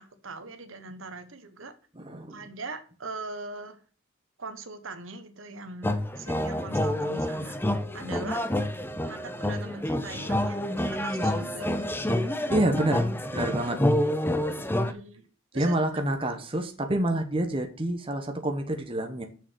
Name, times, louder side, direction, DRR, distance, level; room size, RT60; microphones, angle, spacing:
voice 1, 0.0-1.7 2.3-3.8 4.4-7.6 7.9-8.5 9.0-11.7 14.8-15.3 15.5-15.8, right 3 dB, 70° right, 9 dB, 1.2 m, -40 dB
voice 2, 2.0-2.5 12.5-13.8 15.5-19.3, right 1 dB, 25° right, 5 dB, 1.1 m, -28 dB
sound 1, 5.8-14.9, left 1 dB, 10° left, 0.6 m, -28 dB
6.8 x 5.9 x 7.3 m, 0.40 s
head